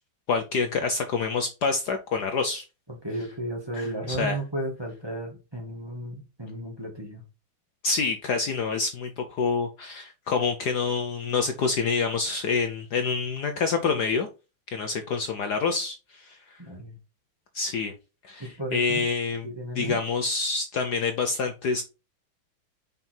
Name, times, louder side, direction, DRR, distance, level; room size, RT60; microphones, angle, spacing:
voice 1, 0.3-2.6 3.7-4.4 7.8-14.3 14.7-16.6 17.5-17.9 18.2-19.5 19.7-21.8, left 4 dB, 60° left, 1.3 m, -27 dB
voice 2, 2.9-7.2 16.6-17.0 18.4-19.0 19.4-20.0, right 1 dB, 10° right, 2.1 m, -34 dB
5.5 x 5.4 x 4.5 m
omnidirectional pair, 2.2 m